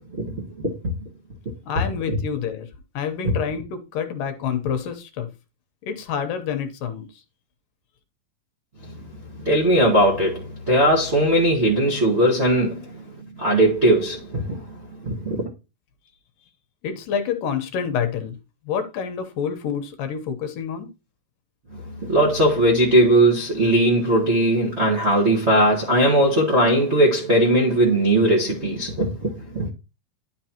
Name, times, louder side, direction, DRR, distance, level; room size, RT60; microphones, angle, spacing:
voice 1, 1.6-2.7 2.9-5.3 5.8-7.2 16.8-18.4 18.6-20.9, left 7 dB, 70° left, 2.5 m, -28 dB
voice 2, 8.8-13.0 13.4-15.4 21.7-29.7, right 1 dB, 70° right, 0.6 m, -19 dB
11.0 x 5.6 x 2.9 m
omnidirectional pair, 4.3 m